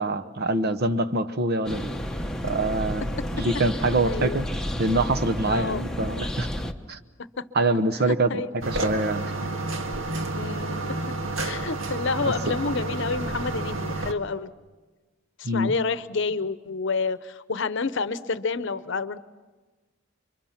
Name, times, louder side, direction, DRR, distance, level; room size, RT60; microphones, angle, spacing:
voice 1, 0.0-1.9 2.4-3.1 3.3-4.5 4.8-6.5 6.9-7.0 7.5-9.3 12.5-12.6 15.4-15.7, right 2 dB, 55° right, 10 dB, 1.0 m, -25 dB
sound 1, 1.7-6.7, equal, 5° left, 0.9 m, -31 dB
voice 2, 4.0-4.4 5.4-5.8 7.4-7.5 8.1-8.5 10.3-11.0 11.4-14.5 15.4-19.2, left 4 dB, 65° left, 14 dB, 0.8 m, -29 dB
sound 2, 8.6-14.1, right 2 dB, 80° right, 1.7 m, -30 dB
29.5 x 24.5 x 5.9 m, 1.3 s
head